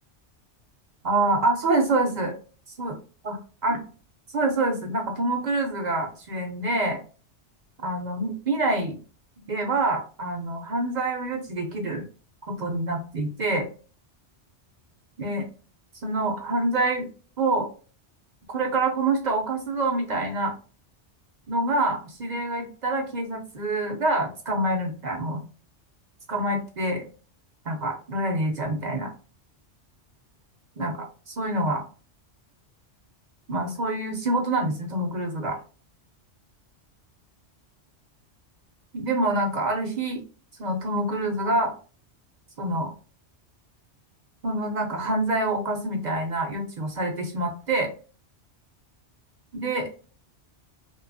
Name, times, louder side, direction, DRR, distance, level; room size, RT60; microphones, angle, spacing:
voice 1, 1.0-2.3 2.8-3.0 3.2-3.4 3.6-3.8 4.3-7.0 7.8-9.0 9.5-12.0 12.5-13.7 15.2-15.5 16.0-17.1 17.4-17.7 18.5-20.5 21.5-25.4 26.3-27.0 27.7-29.1 30.8-31.8 33.5-35.6 38.9-40.2 40.6-41.7 42.6-42.9 44.4-47.9 49.5-49.9, right 2 dB, 55° right, 3 dB, 0.5 m, -26 dB
2.7 x 2.2 x 2.5 m, 0.37 s
omnidirectional pair, 1.2 m